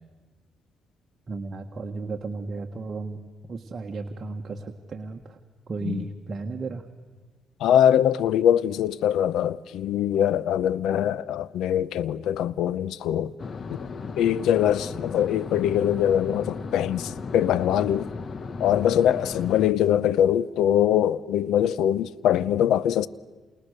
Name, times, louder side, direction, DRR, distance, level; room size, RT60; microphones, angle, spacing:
voice 1, 1.3-3.2 3.5-5.4 5.7-6.9, right 3 dB, 40° right, 1.7 m, -34 dB
voice 2, 7.6-13.3 13.7-13.8 14.2-18.1 18.6-23.1, left 10 dB, 85° left, 0.8 m, -23 dB
sound 1, 13.4-19.7, left 4 dB, 45° left, 1.2 m, -36 dB
29.0 x 28.0 x 6.8 m
cardioid pair, 90°, 0 cm